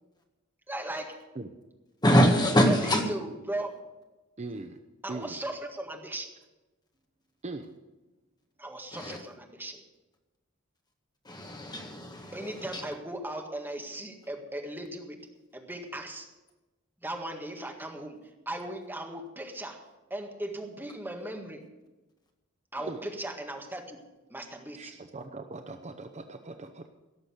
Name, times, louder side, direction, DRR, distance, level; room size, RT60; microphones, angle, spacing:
voice 1, 0.7-1.2 2.7-3.9 5.0-6.3 8.6-9.8 12.3-15.2 15.5-16.3 17.0-18.2 18.5-19.8 20.1-21.6 22.7-24.0 24.3-24.9, right 1 dB, 10° right, 2 dB, 1.7 m, -37 dB
voice 2, 2.0-3.0 8.9-9.2 11.2-12.9, equal, 20° left, 2 dB, 2.0 m, -24 dB
voice 3, 4.4-4.8 5.1-5.4 7.4-7.7 22.8-23.0 24.7-26.9, right 3 dB, 35° right, 7 dB, 0.8 m, -40 dB
17.5 x 6.8 x 7.9 m, 1.1 s
head